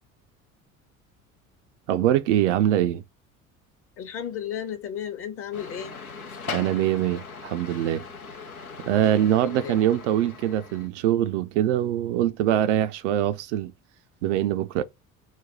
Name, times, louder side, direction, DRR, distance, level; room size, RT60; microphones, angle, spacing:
voice 1, 1.9-3.0 6.5-8.0 8.8-13.7 14.2-14.8, right 11 dB, 60° right, 0.5 m, -23 dB
voice 2, 4.0-6.0 9.1-9.8, left 9 dB, 30° left, 0.8 m, -34 dB
sound 1, 5.5-10.9, left 5 dB, 85° left, 0.7 m, -40 dB
4.0 x 2.1 x 4.4 m
figure-of-eight pair, 60°, 42 cm